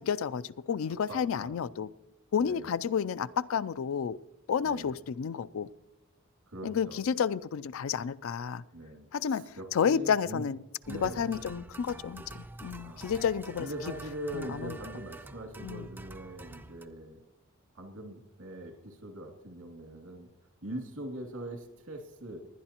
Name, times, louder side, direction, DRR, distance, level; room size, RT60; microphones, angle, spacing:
voice 1, 0.0-1.9 2.3-4.2 4.5-5.7 6.6-8.6 9.1-10.6 10.9-13.7 14.3-14.8 15.6-15.9, left 7 dB, 70° left, 0.4 m, -31 dB
voice 2, 1.1-1.5 2.4-2.8 4.6-5.0 6.5-7.0 8.7-10.4 10.9-11.4 12.8-13.2 13.6-17.2 17.7-20.3 20.6-22.4, right 1 dB, 85° right, 2.3 m, -42 dB
sound 1, 10.8-16.9, right 2 dB, 10° right, 0.3 m, -47 dB
19.5 x 11.0 x 2.9 m
head